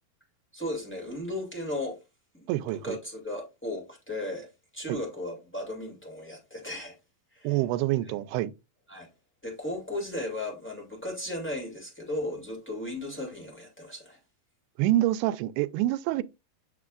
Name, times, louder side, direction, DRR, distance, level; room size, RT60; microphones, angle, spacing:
voice 1, 0.5-2.0 2.3-4.5 4.7-6.9 7.3-7.6 8.9-9.1 9.4-14.2, left 1 dB, 5° left, 1.2 m, -36 dB
voice 2, 2.5-3.0 4.9-5.0 7.4-8.5 14.8-16.2, right 15 dB, 85° right, 2.5 m, -26 dB
6.9 x 6.6 x 2.4 m
omnidirectional pair, 4.5 m